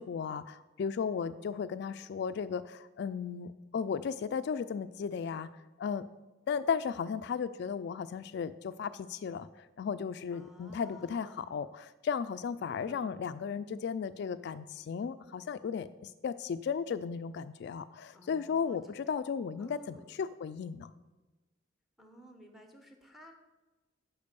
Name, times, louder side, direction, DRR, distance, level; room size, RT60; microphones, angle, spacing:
voice 1, 0.0-5.5 5.8-6.1 6.5-20.9, left 6 dB, 60° left, 12 dB, 0.3 m, -35 dB
voice 2, 10.3-11.5 12.7-13.2 18.1-18.8 19.6-20.2 22.0-23.3, equal, ahead, 4 dB, 1.2 m, -55 dB
10.5 x 4.4 x 6.8 m, 1.2 s
head